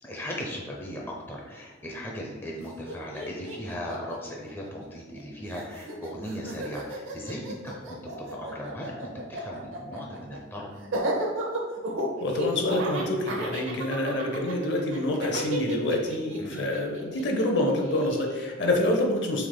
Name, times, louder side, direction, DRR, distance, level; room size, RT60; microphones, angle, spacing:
voice 1, 0.0-8.0 8.3-10.7 16.4-16.6, equal, 10° left, -2 dB, 0.5 m, -38 dB
Laughter, 2.6-2.7 2.9-5.2 5.5-18.5, right 1 dB, 85° right, 0.8 m, -34 dB
voice 2, 12.2-19.5, left 1 dB, 60° left, 2 dB, 0.7 m, -27 dB
6.1 x 3.4 x 2.2 m, 1.3 s
head